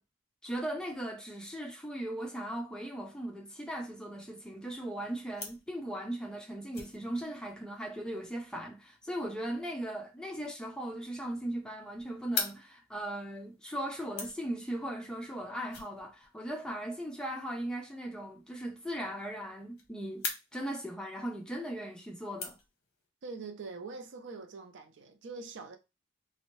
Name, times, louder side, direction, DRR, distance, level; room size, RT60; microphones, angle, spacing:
voice 1, 0.4-22.6, right 1 dB, 5° left, 0.4 m, -38 dB
sound 1, 4.0-23.1, left 5 dB, 55° left, 0.8 m, -46 dB
voice 2, 23.2-25.8, right 4 dB, 60° right, 0.4 m, -43 dB
2.6 x 2.1 x 2.9 m
head